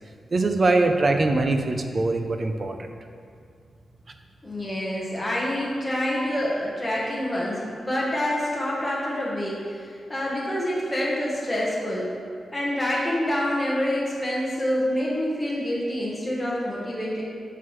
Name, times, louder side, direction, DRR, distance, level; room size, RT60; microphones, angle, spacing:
voice 1, 0.3-2.8, right 2 dB, 35° right, 6 dB, 0.5 m, -22 dB
voice 2, 4.4-12.1 12.5-17.2, left 1 dB, 5° left, -6 dB, 1.3 m, -27 dB
10.5 x 5.7 x 3.2 m, 2.2 s
wide cardioid pair, 160°, 0 cm